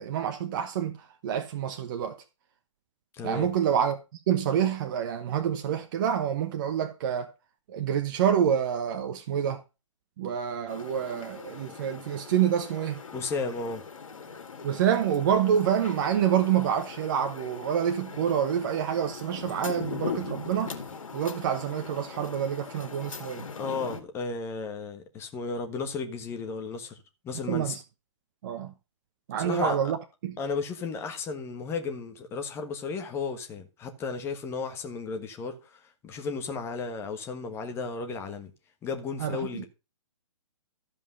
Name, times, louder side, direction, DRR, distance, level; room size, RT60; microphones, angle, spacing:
voice 1, 0.0-2.2 3.2-4.0 4.3-7.3 7.7-9.6 10.2-13.0 14.6-20.7 21.1-23.4 27.5-27.7 28.4-28.7 29.3-30.4 39.2-39.6, right 9 dB, 40° right, 1.0 m, -27 dB
voice 2, 3.1-3.5 13.1-13.8 23.6-27.8 29.4-29.8 30.4-38.5 38.8-39.6, left 4 dB, 15° left, 1.4 m, -34 dB
sound 1, 10.7-24.0, left 5 dB, 85° left, 2.5 m, -40 dB
14.0 x 5.3 x 5.5 m
hypercardioid pair, 155°, 17 cm